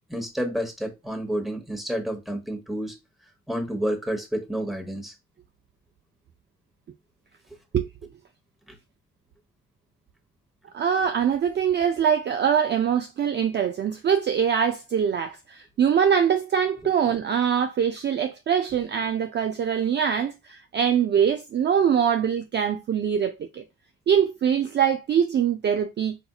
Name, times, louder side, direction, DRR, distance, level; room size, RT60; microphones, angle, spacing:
voice 1, 0.1-3.0 3.5-5.1, equal, ahead, 1.0 m, -29 dB
voice 2, 10.7-23.6 24.1-26.2, right 8 dB, 35° right, 0.4 m, -23 dB
4.2 x 2.6 x 2.3 m
cardioid pair, 90°, 30 cm